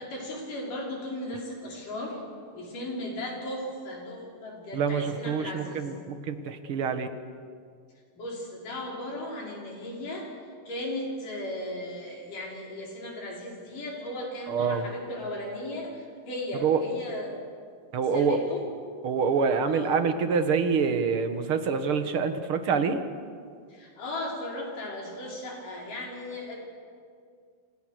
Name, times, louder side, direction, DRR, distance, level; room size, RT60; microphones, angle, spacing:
voice 1, 0.0-2.3 2.5-5.9 8.1-10.3 10.7-17.4 18.1-18.7 19.7-19.9 23.7-26.6, left 1 dB, 90° left, -2 dB, 6.9 m, -36 dB
voice 2, 4.7-7.1 14.5-14.9 16.6-16.8 17.9-18.4 19.0-23.0, right 5 dB, 50° right, 8 dB, 2.0 m, -26 dB
29.5 x 27.0 x 6.5 m, 2.2 s
omnidirectional pair, 3.6 m